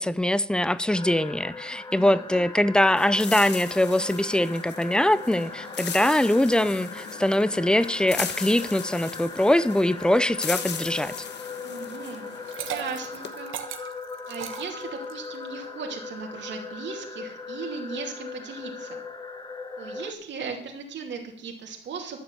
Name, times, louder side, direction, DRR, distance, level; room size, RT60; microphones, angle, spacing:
voice 1, 0.0-11.1, left 1 dB, 5° left, 0.5 m, -23 dB
sound 1, 0.9-20.1, left 4 dB, 20° left, 1.0 m, -39 dB
voice 2, 1.9-2.5 11.6-12.3 12.6-13.5 14.3-19.0 19.8-22.2, right 5 dB, 65° right, 2.7 m, -37 dB
sound 2, 3.0-13.3, left 7 dB, 60° left, 1.3 m, -38 dB
Liquid, 12.3-15.3, right 9 dB, 85° right, 1.2 m, -37 dB
12.0 x 7.0 x 6.9 m
cardioid pair, 90°, 20 cm